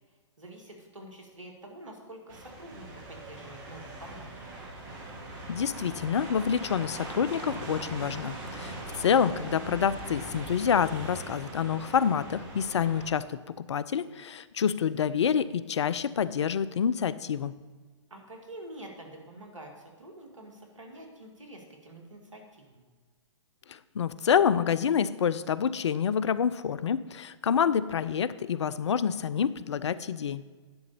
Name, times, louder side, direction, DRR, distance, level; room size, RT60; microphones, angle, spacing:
voice 1, 0.4-4.3 9.2-9.9 18.1-22.8, right 1 dB, 80° right, 1 dB, 2.0 m, -47 dB
sound 1, 2.3-13.1, right 2 dB, 45° right, 2.1 m, -41 dB
voice 2, 5.5-17.5 23.7-30.4, left 7 dB, 65° left, 16 dB, 0.4 m, -27 dB
10.5 x 3.9 x 6.7 m, 1.4 s
figure-of-eight pair, 120°, 16 cm